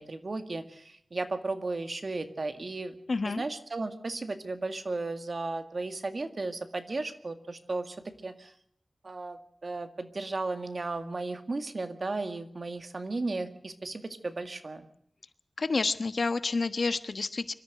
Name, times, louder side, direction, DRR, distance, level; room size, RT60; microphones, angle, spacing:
voice 1, 0.0-3.0 3.2-8.5 9.0-14.9, right 3 dB, 55° right, 8 dB, 2.0 m, -35 dB
voice 2, 3.1-3.4 15.6-17.5, left 3 dB, 65° left, 12 dB, 1.2 m, -29 dB
25.0 x 13.5 x 7.9 m, 0.69 s
wide cardioid pair, 90°, 0 cm